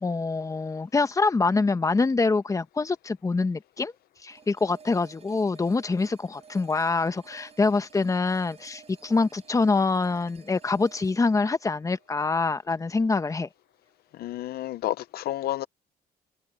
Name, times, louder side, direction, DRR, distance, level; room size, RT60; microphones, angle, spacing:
voice 1, 0.0-3.9 4.2-13.5, left 3 dB, 20° left, 1.1 m, -25 dB
sound 1, 4.3-13.3, right 6 dB, 35° right, 5.1 m, -54 dB
voice 2, 14.2-15.7, left 14 dB, 65° left, 0.6 m, -30 dB
cardioid pair, 110°, 17 cm